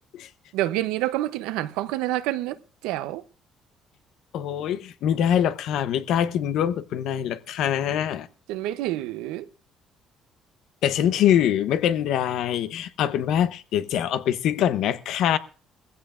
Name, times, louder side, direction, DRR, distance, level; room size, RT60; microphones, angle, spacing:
voice 1, 0.5-3.2 8.5-9.5, right 15 dB, 90° right, 0.7 m, -28 dB
voice 2, 4.3-8.3 10.8-15.4, left 10 dB, 75° left, 0.8 m, -24 dB
20.5 x 15.5 x 2.5 m
supercardioid pair, 80°, 0 cm